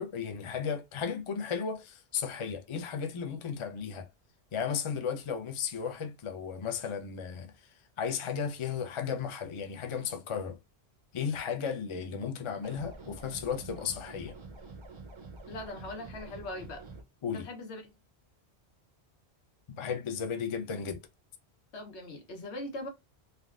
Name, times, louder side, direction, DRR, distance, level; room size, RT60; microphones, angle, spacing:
voice 1, 0.0-4.1 4.5-7.5 8.0-10.6 11.1-14.3 17.2-17.5 19.8-21.0, left 7 dB, 45° left, 0.4 m, -34 dB
sound 1, 12.6-17.0, right 3 dB, 45° right, 0.3 m, -47 dB
voice 2, 15.5-16.8 17.3-17.8 21.7-22.9, left 2 dB, 80° left, 1.1 m, -40 dB
3.4 x 2.1 x 2.3 m
omnidirectional pair, 1.1 m